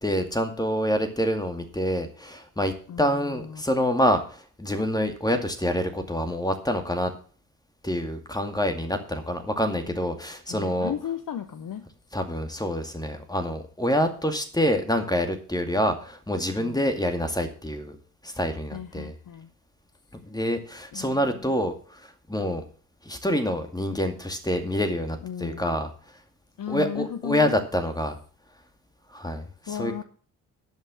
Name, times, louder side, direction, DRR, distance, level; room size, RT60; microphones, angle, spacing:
voice 1, 0.0-7.1 7.8-10.9 12.1-18.0 18.2-19.1 20.2-22.6 23.0-25.9 26.7-28.2 29.1-29.9, equal, 10° left, 6 dB, 2.2 m, -27 dB
voice 2, 2.9-3.6 10.5-11.8 16.6-16.9 18.7-19.5 20.9-21.4 25.2-25.7 26.6-27.6 29.7-30.0, left 9 dB, 45° left, 9 dB, 1.0 m, -35 dB
11.5 x 5.6 x 7.6 m, 0.43 s
figure-of-eight pair, 40°, 46 cm